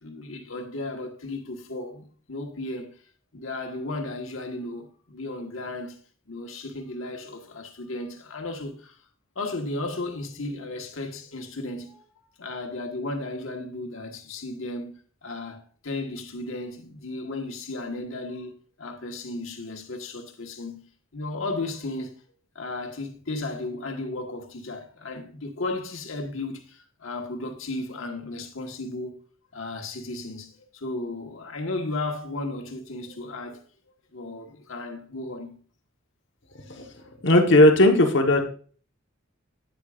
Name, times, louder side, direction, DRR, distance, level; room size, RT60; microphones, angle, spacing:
voice 1, 0.0-3.0 3.3-6.0 6.3-9.0 9.3-14.9 15.2-20.8 21.1-22.2 22.5-29.2 29.5-33.6 34.1-35.6, left 2 dB, 75° left, 1.4 m, -34 dB
voice 2, 37.2-38.4, left 1 dB, 60° left, 1.2 m, -17 dB
9.3 x 8.5 x 2.4 m
head